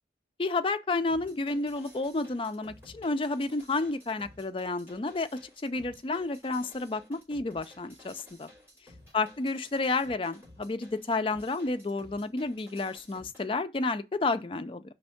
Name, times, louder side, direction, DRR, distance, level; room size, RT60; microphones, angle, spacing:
voice 1, 0.4-5.3 5.6-8.5 9.1-14.8, left 3 dB, 30° left, 0.4 m, -31 dB
sound 1, 1.1-13.4, left 1 dB, 15° right, 3.7 m, -55 dB
5.2 x 3.5 x 5.7 m
head